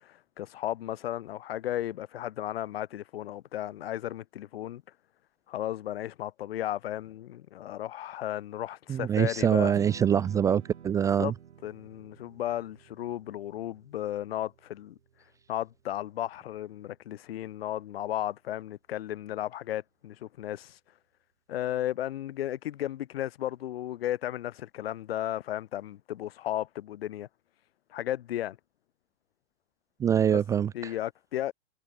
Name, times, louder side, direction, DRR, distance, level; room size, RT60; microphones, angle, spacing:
voice 1, 0.0-4.8 5.5-9.7 11.2-11.3 11.6-15.0 15.5-20.8 21.5-27.3 27.9-28.6 30.3-30.4 30.7-31.5, left 12 dB, 60° left, 6.1 m, -34 dB
voice 2, 8.9-11.3 30.0-30.9, right 8 dB, 10° right, 0.6 m, -24 dB
Strum, 9.7-16.0, right 8 dB, 90° right, 4.8 m, -50 dB
hypercardioid pair, 155°, 33 cm